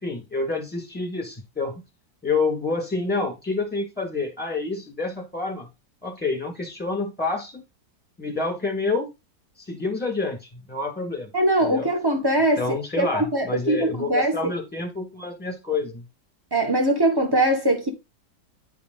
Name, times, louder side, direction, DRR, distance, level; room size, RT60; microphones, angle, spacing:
voice 1, 0.0-1.8 2.2-5.7 6.0-7.6 8.2-9.1 9.7-11.3 11.6-11.9 12.6-16.0, left 3 dB, 5° left, 1.9 m, -28 dB
voice 2, 11.3-12.6 13.0-14.4 16.5-17.9, right 1 dB, 15° right, 1.0 m, -21 dB
9.7 x 3.5 x 3.9 m
omnidirectional pair, 1.8 m